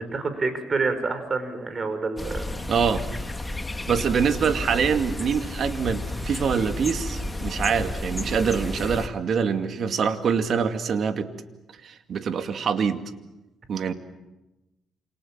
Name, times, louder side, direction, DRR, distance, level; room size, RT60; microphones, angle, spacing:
voice 1, 0.1-2.6, right 3 dB, 35° right, 9 dB, 5.0 m, -27 dB
sound 1, 2.2-9.1, left 2 dB, 15° left, 1.7 m, -32 dB
voice 2, 2.7-3.0 3.9-11.3 11.8-13.0 13.7-13.9, right 6 dB, 60° right, 7 dB, 2.3 m, -25 dB
28.0 x 27.5 x 7.4 m, 1.0 s
cardioid pair, 90°, 0 cm